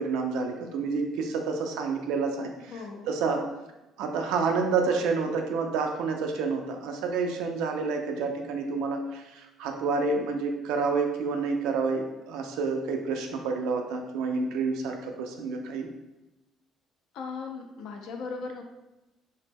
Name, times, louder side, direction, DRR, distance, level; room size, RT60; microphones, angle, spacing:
voice 1, 0.0-2.7 3.1-3.4 4.0-15.9, right 4 dB, 90° right, 3 dB, 0.4 m, -29 dB
voice 2, 2.7-3.1 17.1-18.6, left 4 dB, 60° left, 3 dB, 0.3 m, -37 dB
2.9 x 2.1 x 3.3 m, 0.98 s
cardioid pair, 175°, 0 cm